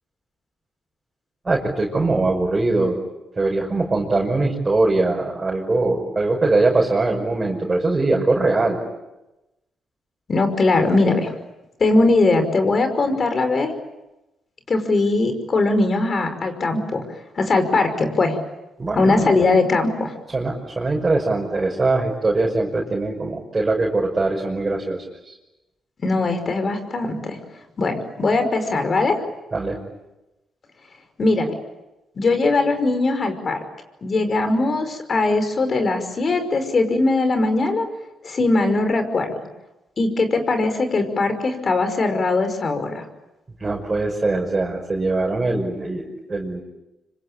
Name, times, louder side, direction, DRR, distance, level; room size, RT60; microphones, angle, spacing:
voice 1, 1.4-3.0 3.4-8.8 18.8-19.3 20.3-25.3 29.5-29.8 43.6-46.6, right 2 dB, 30° right, -2 dB, 5.8 m, -22 dB
voice 2, 10.3-11.3 11.8-13.7 14.7-17.0 17.4-18.4 18.9-20.1 26.0-27.4 27.8-29.2 31.2-31.5 32.2-33.6 34.0-37.9 38.2-39.3 40.0-43.0, left 3 dB, 45° left, 8 dB, 5.3 m, -20 dB
26.0 x 25.5 x 8.7 m, 0.99 s
cardioid pair, 80°, 0 cm